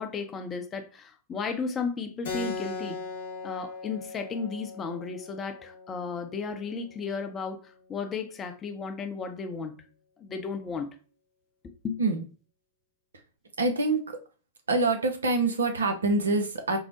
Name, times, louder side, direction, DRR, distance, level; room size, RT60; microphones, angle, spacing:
voice 1, 0.0-3.0 3.4-9.8 10.2-10.9 11.8-12.0, left 5 dB, 25° left, 0.6 m, -34 dB
Keyboard (musical), 2.2-7.3, left 4 dB, 65° left, 1.1 m, -39 dB
voice 2, 13.6-14.2 14.7-16.8, right 3 dB, 75° right, 0.6 m, -25 dB
4.5 x 2.1 x 2.7 m
figure-of-eight pair, 100°, 0 cm